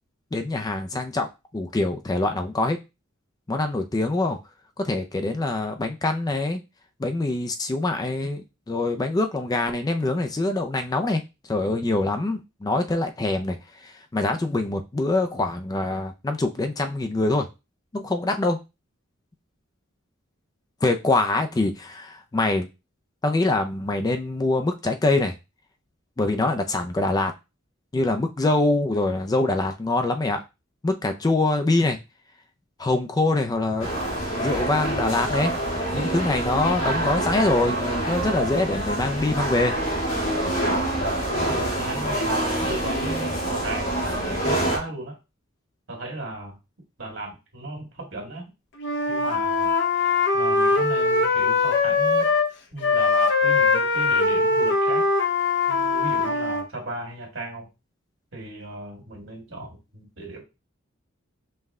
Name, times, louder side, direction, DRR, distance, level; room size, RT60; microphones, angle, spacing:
voice 1, 0.3-1.3 1.5-2.8 3.5-4.4 4.8-6.6 7.0-11.2 11.5-17.5 17.9-18.6 20.8-22.7 23.2-25.3 26.2-27.3 27.9-30.4 30.8-32.0 32.8-33.9 34.4-35.5 35.9-37.8 38.1-39.7, left 2 dB, 20° left, 6 dB, 0.3 m, -24 dB
sound 1, 33.8-44.8, right 1 dB, 75° left, 1.7 m, -26 dB
voice 2, 41.4-45.2 45.9-46.5 47.0-48.4 49.1-50.0 50.3-52.3 52.7-55.1 55.7-57.7 58.3-60.4, right 2 dB, 65° right, 0 dB, 1.8 m, -36 dB
Wind instrument woodwind instrument, 48.8-52.5 52.8-56.7, left 4 dB, 60° left, 0.6 m, -21 dB
5.4 x 2.1 x 3.5 m, 0.26 s
head